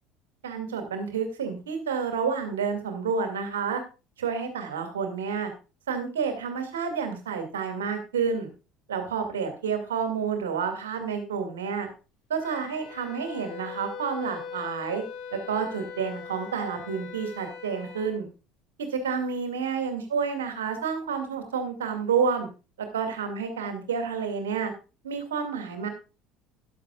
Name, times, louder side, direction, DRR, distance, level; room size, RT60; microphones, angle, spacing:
voice 1, 0.4-3.8 4.2-5.5 5.9-8.5 8.9-11.9 12.3-15.0 15.3-18.3 18.9-22.5 22.8-24.7 25.0-25.9, right 6 dB, 70° right, 6 dB, 2.3 m, -29 dB
Wind instrument woodwind instrument, 12.4-18.1, left 6 dB, 55° left, 2.9 m, -41 dB
13.5 x 11.0 x 2.4 m, 0.31 s
figure-of-eight pair, 65°, 0 cm